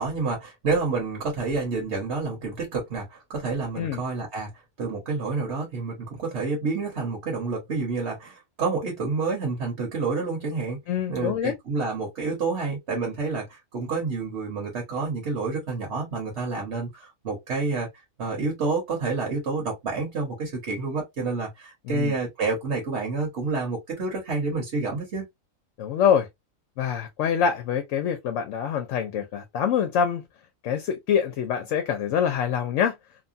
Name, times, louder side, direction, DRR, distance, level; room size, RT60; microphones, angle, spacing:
voice 1, 0.0-4.5 4.8-10.8 11.1-17.9 18.2-25.3, right 4 dB, 60° right, 1.3 m, -29 dB
voice 2, 10.9-11.5 21.9-22.1 25.8-26.3 26.8-30.2 30.6-33.0, left 8 dB, 70° left, 0.9 m, -25 dB
2.9 x 2.2 x 2.5 m
omnidirectional pair, 1.4 m